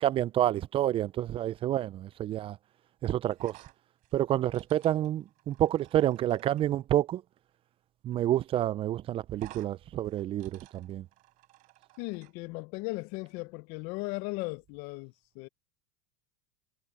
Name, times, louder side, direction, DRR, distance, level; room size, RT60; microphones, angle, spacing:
voice 1, 0.0-2.6 3.0-3.5 4.1-7.2 8.0-11.0, right 12 dB, 35° right, 0.4 m, -28 dB
sound 1, 3.3-6.7 8.1-8.3 8.5-8.6 9.3-9.7 10.0-12.3, right 19 dB, 55° right, 4.5 m, -54 dB
voice 2, 12.0-15.5, left 24 dB, 60° left, 1.0 m, -37 dB
hypercardioid pair, 100°, 16 cm